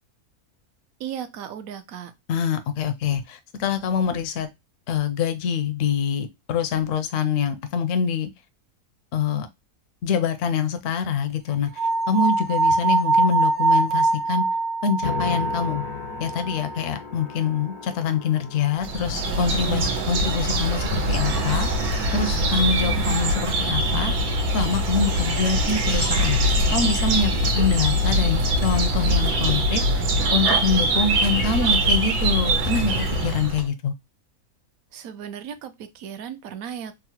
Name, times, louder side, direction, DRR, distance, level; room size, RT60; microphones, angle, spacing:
voice 1, 1.0-2.1 34.9-36.9, right 8 dB, 70° right, 0.9 m, -36 dB
voice 2, 2.3-4.5 4.9-8.3 9.1-9.5 10.0-14.5 14.8-15.8 16.2-21.7 22.1-24.1 24.5-26.4 26.7-29.8 30.3-33.9, left 6 dB, 70° left, 0.9 m, -25 dB
sound 1, 11.8-16.9, right 3 dB, 50° right, 0.6 m, -23 dB
sound 2, 15.0-23.4, left 7 dB, 85° left, 1.1 m, -39 dB
sound 3, 18.8-33.7, right 1 dB, 90° right, 1.4 m, -23 dB
3.6 x 2.0 x 2.8 m
omnidirectional pair, 1.6 m